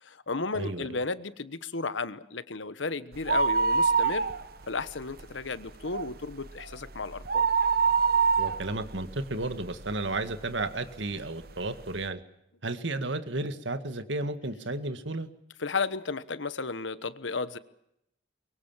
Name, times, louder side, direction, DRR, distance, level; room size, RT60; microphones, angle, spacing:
voice 1, 0.0-4.3 4.7-7.5 15.6-17.6, left 4 dB, 75° left, 14 dB, 1.2 m, -33 dB
voice 2, 0.5-0.9 8.4-12.2 12.6-15.3, right 2 dB, 70° right, 9 dB, 1.9 m, -33 dB
sound 1, 3.1-4.8 5.1-5.2 5.7-10.1 10.6-10.7 11.5-11.6 11.8-11.9, right 5 dB, 50° right, 1.0 m, -25 dB
23.5 x 23.0 x 7.4 m, 0.80 s
head